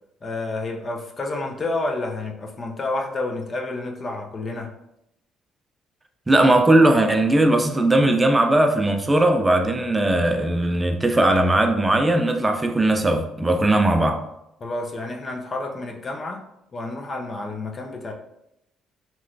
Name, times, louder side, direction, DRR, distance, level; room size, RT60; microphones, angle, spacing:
voice 1, 0.2-4.7 14.6-16.4 16.7-18.1, left 2 dB, 40° left, 0.6 m, -29 dB
voice 2, 6.3-14.2, right 1 dB, 20° right, 0.4 m, -18 dB
3.0 x 2.9 x 2.6 m
supercardioid pair, 65°, 0 cm